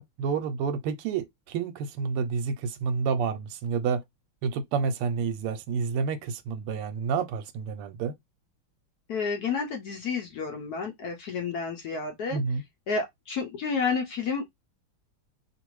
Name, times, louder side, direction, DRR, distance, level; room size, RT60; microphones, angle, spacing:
voice 1, 0.0-4.0 4.4-8.1 12.3-12.6, right 5 dB, 85° right, 1.5 m, -29 dB
voice 2, 9.1-12.4 12.9-14.4, left 5 dB, 75° left, 0.8 m, -30 dB
3.2 x 2.6 x 3.0 m
omnidirectional pair, 2.4 m